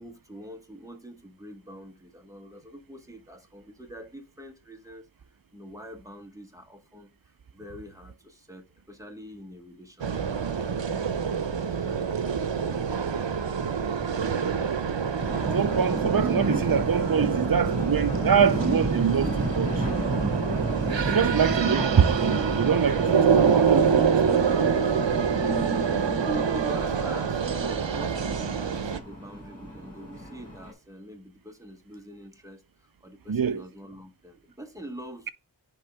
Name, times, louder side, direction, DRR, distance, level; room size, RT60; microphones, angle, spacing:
voice 1, 0.0-5.0 5.5-7.1 7.5-10.2 11.8-12.5 21.6-21.8 26.0-35.3, right 1 dB, 5° right, 1.5 m, -43 dB
sound 1, 10.0-29.0, right 6 dB, 85° right, 0.8 m, -26 dB
sound 2, 15.2-30.7, right 1 dB, 35° right, 4.3 m, -32 dB
voice 2, 15.5-19.9 21.1-24.6 33.3-33.6, right 7 dB, 55° right, 0.6 m, -25 dB
10.0 x 3.7 x 3.5 m
wide cardioid pair, 45°, 43 cm